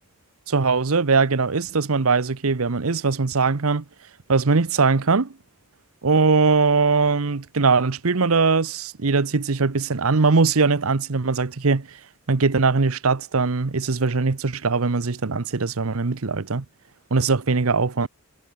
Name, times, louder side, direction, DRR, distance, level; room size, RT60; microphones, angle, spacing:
voice 1, 0.5-3.8 4.3-5.3 6.0-11.9 12.3-16.6 17.1-18.1, right 4 dB, 85° right, 0.9 m, -21 dB
head